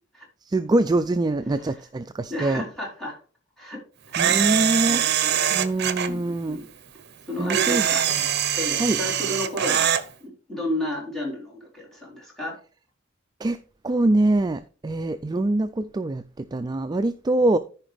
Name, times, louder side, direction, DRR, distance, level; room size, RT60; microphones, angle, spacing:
voice 1, 0.5-2.6 4.2-5.0 5.5-6.6 7.4-7.9 8.2-8.3 8.8-9.0 13.4-13.6 13.8-17.6, right 2 dB, 20° right, 0.3 m, -24 dB
voice 2, 2.3-3.2 3.6-3.8 4.1-4.4 4.9-5.5 6.1-6.7 7.3-8.0 8.5-9.9 10.2-12.6, equal, ahead, 4.0 m, -32 dB
Camera, 4.1-6.1 7.5-10.0, right 9 dB, 55° right, 0.8 m, -23 dB
14.0 x 5.0 x 3.4 m
head